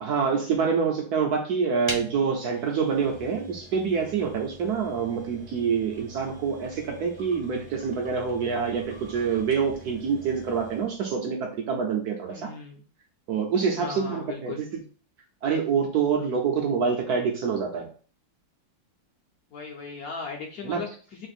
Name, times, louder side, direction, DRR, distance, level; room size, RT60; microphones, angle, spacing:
voice 1, 0.0-12.5 13.3-14.8 15.4-17.9 20.6-20.8, right 6 dB, 70° right, 1 dB, 0.9 m, -26 dB
sound 1, 1.8-11.0, right 1 dB, 15° right, 0.4 m, -43 dB
voice 2, 12.3-12.8 13.7-14.6 19.5-21.3, left 5 dB, 65° left, 0 dB, 0.9 m, -37 dB
3.3 x 2.6 x 4.1 m, 0.41 s
omnidirectional pair, 2.2 m